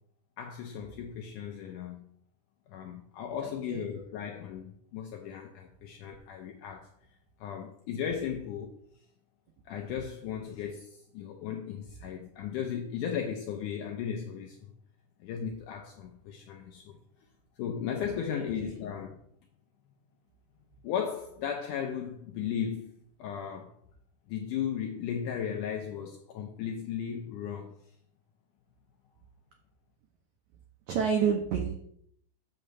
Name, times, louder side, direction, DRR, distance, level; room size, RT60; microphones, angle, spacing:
voice 1, 0.4-2.1 2.7-6.9 7.4-8.7 9.7-14.6 15.2-17.0 17.6-19.2 20.8-22.9 23.2-23.7 24.3-27.8, left 8 dB, 80° left, 1.8 m, -36 dB
voice 2, 3.4-3.8 18.3-18.7 30.9-31.7, right 7 dB, 90° right, 1.6 m, -29 dB
8.0 x 4.3 x 6.9 m
omnidirectional pair, 4.4 m